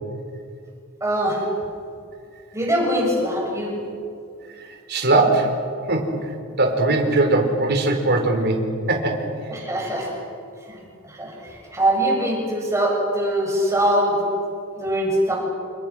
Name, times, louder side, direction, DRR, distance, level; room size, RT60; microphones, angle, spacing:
voice 1, 1.0-1.4 2.5-3.8 9.5-10.1 10.7-10.8 11.1-11.4 11.7-14.2 14.8-15.4, right 1 dB, 15° right, -2 dB, 7.3 m, -22 dB
voice 2, 4.6-5.6 5.9-6.1 6.6-9.3, right 2 dB, 50° right, 3 dB, 4.5 m, -20 dB
29.0 x 28.0 x 6.3 m, 2.5 s
head